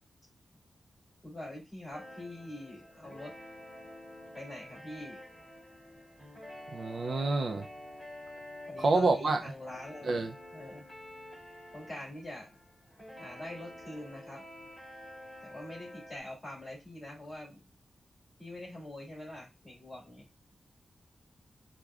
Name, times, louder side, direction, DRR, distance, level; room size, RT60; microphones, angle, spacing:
voice 1, 1.2-3.3 4.3-5.2 8.7-10.9 11.7-12.5 13.2-14.4 15.4-17.6 18.4-20.3, left 1 dB, 15° left, 2.2 m, -44 dB
sound 1, 1.9-16.2, left 1 dB, ahead, 2.2 m, -49 dB
voice 2, 6.7-7.7 8.8-9.4 10.0-10.3, right 3 dB, 60° right, 0.4 m, -28 dB
4.8 x 2.2 x 2.3 m
wide cardioid pair, 160°, 0 cm